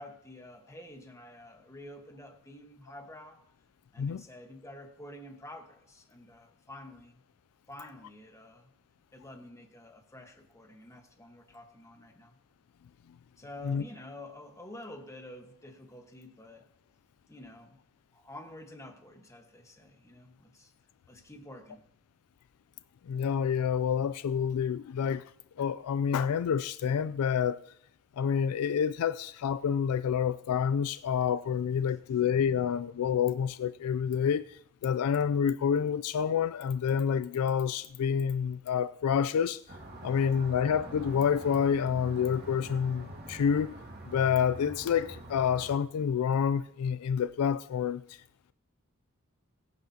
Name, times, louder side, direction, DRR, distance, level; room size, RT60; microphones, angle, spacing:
voice 1, 0.0-3.4 3.9-7.2 7.7-8.7 9.1-12.4 13.4-16.7 17.3-17.8 18.1-20.7 21.1-21.8, left 1 dB, 15° left, 1.3 m, -49 dB
voice 2, 23.1-25.2 25.6-27.6 28.2-39.6 40.0-43.7 44.1-48.0, left 7 dB, 85° left, 0.4 m, -28 dB
sound 1, 39.7-45.8, right 1 dB, 50° right, 2.1 m, -45 dB
21.5 x 9.4 x 2.8 m
head